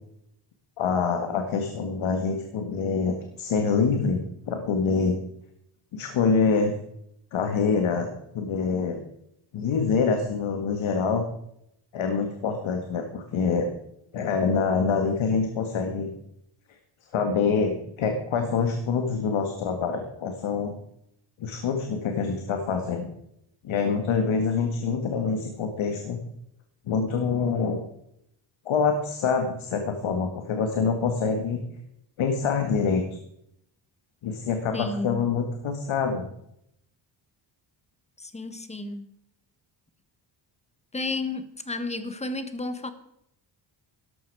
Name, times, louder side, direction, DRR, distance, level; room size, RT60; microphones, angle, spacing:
voice 1, 0.8-5.2 5.9-6.8 7.3-9.0 9.5-11.2 11.9-13.7 14.1-16.1 17.1-20.7 21.4-23.1 23.6-26.2 26.9-27.8 28.7-31.6 32.2-33.0 34.2-36.3, left 5 dB, 75° left, 2.0 m, -25 dB
voice 2, 34.7-35.3 38.2-39.1 40.9-42.9, left 2 dB, 15° left, 1.3 m, -32 dB
13.5 x 12.0 x 4.8 m
cardioid pair, 120°, 48 cm